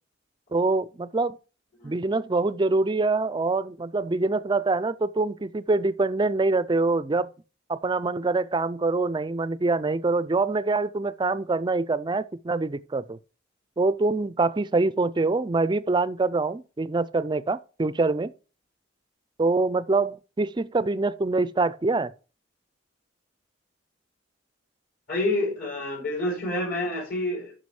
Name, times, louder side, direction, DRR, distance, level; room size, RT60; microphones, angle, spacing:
voice 1, 0.5-1.4 1.8-7.3 7.7-13.2 13.8-18.3 19.4-22.1, right 3 dB, 25° right, 0.4 m, -25 dB
voice 2, 25.1-27.5, left 1 dB, 55° left, 4.7 m, -28 dB
9.5 x 6.1 x 4.8 m
head